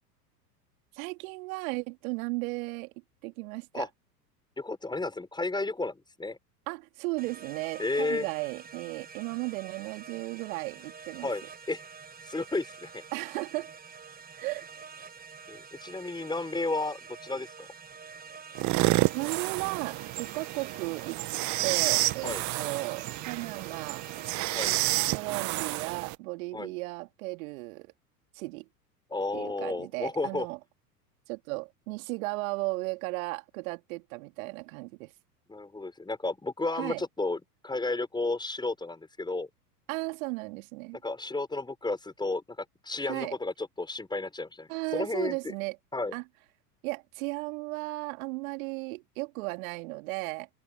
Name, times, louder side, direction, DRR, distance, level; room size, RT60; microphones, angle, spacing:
voice 1, 0.9-2.9 3.2-3.9 6.7-11.3 13.1-13.7 14.4-14.7 19.1-21.2 21.6-24.1 25.1-27.9 28.3-28.7 29.3-30.6 31.3-35.1 36.8-37.0 39.9-41.0 43.0-43.4 44.7-45.8 46.1-46.2 46.8-50.5, right 25 dB, 55° right, 2.9 m, -35 dB
voice 2, 4.6-6.4 7.8-8.3 11.2-11.8 12.2-13.0 15.5-17.7 22.2-22.4 24.5-24.7 26.5-26.7 29.1-30.5 35.5-39.5 41.0-42.4 42.8-45.4 45.9-46.1, left 2 dB, 10° left, 6.0 m, -32 dB
sound 1, 7.2-25.0, right 5 dB, 20° right, 5.6 m, -48 dB
sound 2, 18.6-26.2, right 21 dB, 35° right, 1.0 m, -30 dB
hypercardioid pair, 95°, 49 cm